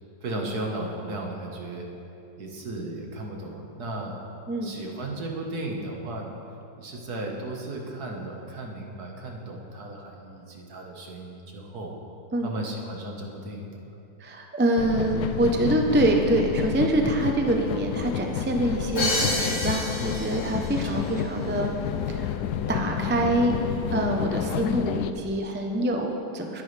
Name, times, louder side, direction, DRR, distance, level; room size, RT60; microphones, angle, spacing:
voice 1, 0.2-1.9 2.4-4.2 4.6-6.4 6.8-11.9 12.4-13.7 20.9-21.1, right 2 dB, 65° right, 0 dB, 1.9 m, -35 dB
voice 2, 14.2-21.8 22.1-22.3 22.7-23.5 23.9-26.6, right 1 dB, 15° right, 2 dB, 0.4 m, -25 dB
sound 1, 14.8-25.1, left 8 dB, 75° left, 1.0 m, -30 dB
Crash cymbal, 19.0-20.8, left 2 dB, 55° left, 3.6 m, -28 dB
20.5 x 9.4 x 3.4 m, 2.8 s
omnidirectional pair, 1.8 m